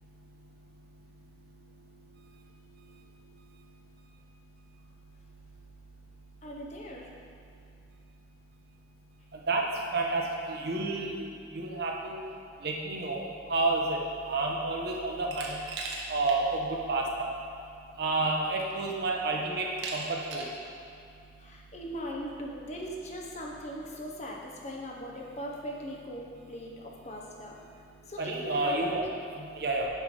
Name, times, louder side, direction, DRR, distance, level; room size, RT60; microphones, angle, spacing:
voice 1, 6.4-7.1 21.4-27.6 28.1-29.2, equal, 40° left, -1 dB, 0.9 m, -40 dB
voice 2, 9.9-10.2 10.5-11.3 11.5-12.2 12.6-14.0 14.3-15.6 16.1-17.3 18.0-19.6 19.9-20.4 28.2-29.0 29.4-29.9, right 3 dB, 60° right, -1 dB, 0.9 m, -30 dB
Glass, 15.3-16.4 16.8-16.9 18.0-18.1 18.6-19.0 19.8-20.6, right 3 dB, 85° right, 0.9 m, -38 dB
8.4 x 3.3 x 5.3 m, 2.5 s
head